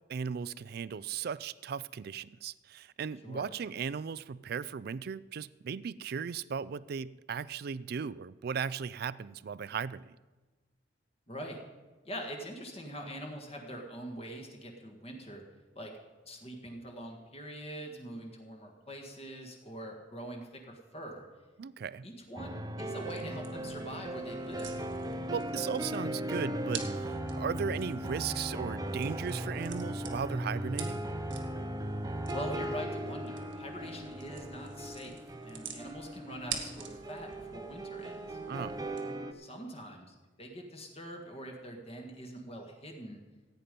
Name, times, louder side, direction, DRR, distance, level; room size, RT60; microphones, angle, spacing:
voice 1, 0.1-10.2 21.6-22.1 25.3-31.0 38.5-38.8, right 6 dB, 55° right, 18 dB, 0.4 m, -37 dB
voice 2, 11.3-11.6 12.0-15.4 15.7-15.9 16.2-21.2 22.0-24.7 32.3-38.4 39.3-43.2, equal, 35° left, 1 dB, 1.7 m, -44 dB
sound 1, 22.4-39.3, right 1 dB, 20° right, 0.6 m, -38 dB
sound 2, 22.9-39.0, right 6 dB, 90° right, 1.7 m, -47 dB
15.5 x 9.1 x 5.3 m, 1.3 s
head